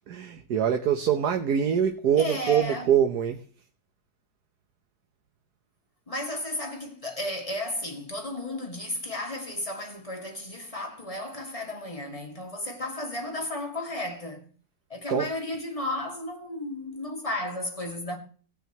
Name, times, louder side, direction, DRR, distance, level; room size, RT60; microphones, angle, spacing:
voice 1, 0.1-3.4 15.1-15.3, right 8 dB, 85° right, 1.6 m, -24 dB
voice 2, 2.2-2.9 6.1-14.5 14.9-18.2, left 1 dB, 20° left, 2.4 m, -33 dB
18.5 x 9.2 x 3.1 m
omnidirectional pair, 1.7 m